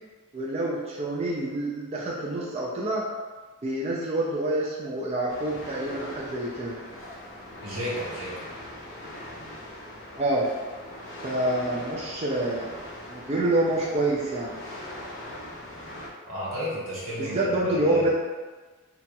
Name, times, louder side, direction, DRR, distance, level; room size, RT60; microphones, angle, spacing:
voice 1, 0.3-3.1 3.6-6.8 10.1-10.5 11.2-12.7 13.1-14.6 17.2-18.1, right 1 dB, 30° right, -5 dB, 0.4 m, -27 dB
sound 1, 5.3-16.1, left 1 dB, 70° left, 0.6 m, -41 dB
voice 2, 7.6-8.3 16.2-18.1, equal, 90° right, -7 dB, 1.1 m, -32 dB
2.9 x 2.8 x 2.2 m, 1.3 s
head